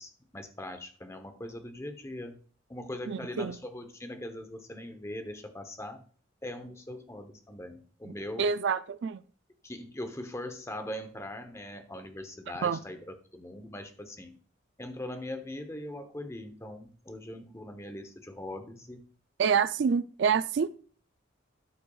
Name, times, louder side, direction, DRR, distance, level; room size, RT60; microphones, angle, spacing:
voice 1, 0.0-2.4 2.7-6.0 6.4-8.5 9.6-14.3 14.8-19.0, left 1 dB, 15° left, 7 dB, 0.9 m, -41 dB
voice 2, 3.1-3.6 8.1-9.2 12.6-12.8 19.4-20.7, right 6 dB, 60° right, 14 dB, 0.4 m, -27 dB
12.5 x 5.8 x 2.4 m, 0.42 s
head